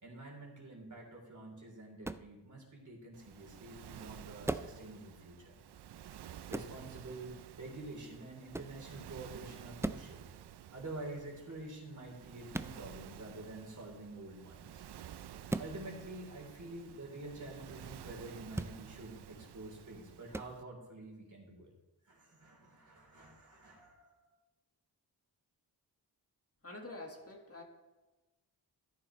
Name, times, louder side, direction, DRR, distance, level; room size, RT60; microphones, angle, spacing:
voice 1, 0.0-5.5 6.5-10.3 10.7-14.9 15.6-21.7 22.0-24.3, right 2 dB, 45° right, -1 dB, 3.5 m, -48 dB
sound 1, 2.0-2.3 4.4-4.8 6.5-6.8 8.5-8.8 9.8-10.1 12.5-12.8 15.5-15.7 18.5-18.8 20.3-20.5, right 2 dB, 5° right, 0.3 m, -37 dB
Waves surf, 3.1-20.6, right 10 dB, 70° right, 0.5 m, -52 dB
voice 2, 26.6-27.6, left 2 dB, 35° left, 1 dB, 1.7 m, -47 dB
13.0 x 10.5 x 3.1 m, 1.1 s
cardioid pair, 60°, 42 cm